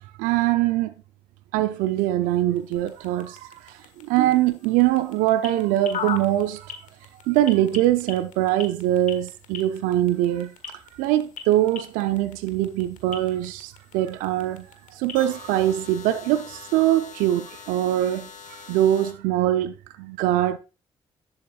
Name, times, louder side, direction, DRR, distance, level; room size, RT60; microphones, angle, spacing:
voice 1, 0.2-0.9 1.5-6.7 7.3-10.5 10.9-20.6, right 13 dB, 80° right, 0.5 m, -23 dB
sound 1, 1.7-19.1, left 6 dB, 65° left, 1.4 m, -41 dB
11.0 x 7.8 x 2.3 m
hypercardioid pair, 40°, 14 cm